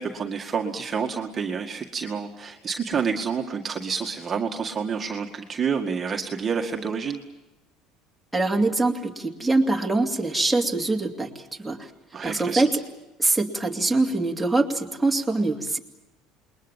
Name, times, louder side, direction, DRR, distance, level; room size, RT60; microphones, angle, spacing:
voice 1, 0.0-7.2 12.1-12.6, right 6 dB, 25° right, 2 dB, 2.0 m, -28 dB
voice 2, 8.3-11.9 12.2-12.7 13.2-15.8, right 2 dB, ahead, 0 dB, 2.6 m, -24 dB
28.5 x 21.5 x 7.3 m, 0.98 s
cardioid pair, 140°, 0 cm